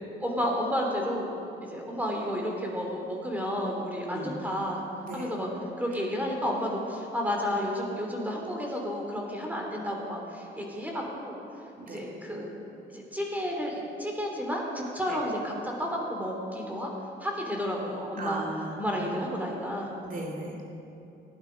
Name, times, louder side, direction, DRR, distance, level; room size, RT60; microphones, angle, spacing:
voice 1, 0.2-4.8 5.1-5.5 5.8-11.4 11.8-12.5 12.9-16.9 17.2-18.5 18.8-19.9, equal, 10° right, 0 dB, 2.9 m, -31 dB
voice 2, 18.2-18.7 20.0-20.7, right 2 dB, 45° right, 0 dB, 2.5 m, -37 dB
16.0 x 11.0 x 5.2 m, 2.8 s
cardioid pair, 90°, 20 cm